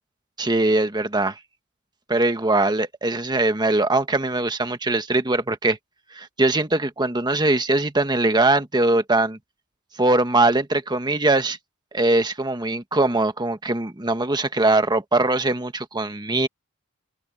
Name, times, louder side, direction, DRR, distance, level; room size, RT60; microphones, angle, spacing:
voice 1, 0.4-1.4 2.1-5.8 6.1-9.4 10.0-11.6 11.9-16.5, right 2 dB, 20° right, 1.4 m, -21 dB
open air
head